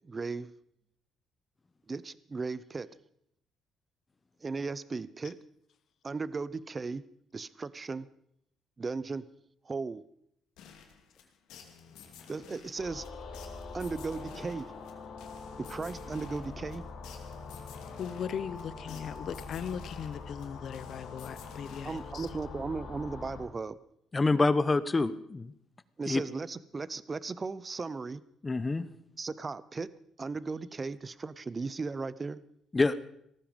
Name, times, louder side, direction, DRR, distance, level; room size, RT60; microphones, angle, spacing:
voice 1, 0.0-0.5 1.9-2.9 4.4-5.3 6.0-7.0 7.3-8.1 8.8-9.3 9.7-10.0 12.3-13.1 13.7-14.7 15.6-16.8 21.8-23.8 26.0-28.2 29.2-29.9 30.2-32.4, right 4 dB, 25° right, 18 dB, 0.7 m, -36 dB
sound 1, 10.6-22.7, left 7 dB, 90° left, 2.5 m, -54 dB
sound 2, 12.8-23.4, left 4 dB, 75° left, 4.1 m, -44 dB
voice 2, 18.0-22.3, left 8 dB, 55° left, 15 dB, 0.9 m, -38 dB
voice 3, 24.1-25.5 26.1-26.2 28.4-28.9 32.7-33.0, left 3 dB, 20° left, 15 dB, 0.8 m, -26 dB
17.5 x 14.0 x 5.3 m, 0.72 s
cardioid pair, 125°, 0 cm